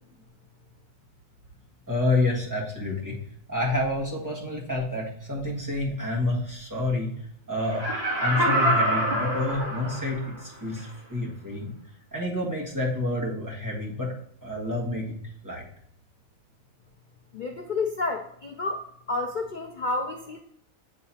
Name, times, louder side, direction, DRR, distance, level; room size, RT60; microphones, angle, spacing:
voice 1, 1.9-3.2 3.5-7.1 7.5-7.9 8.2-11.7 12.1-14.1 14.4-15.2 15.4-15.6, left 2 dB, 15° right, -3 dB, 1.5 m, -28 dB
Laughter, 7.6-10.3 10.8-10.9, right 1 dB, 45° right, 2.2 m, -25 dB
voice 2, 17.3-20.4, left 3 dB, 60° left, 2 dB, 0.5 m, -30 dB
9.1 x 3.8 x 2.8 m, 0.70 s
omnidirectional pair, 1.5 m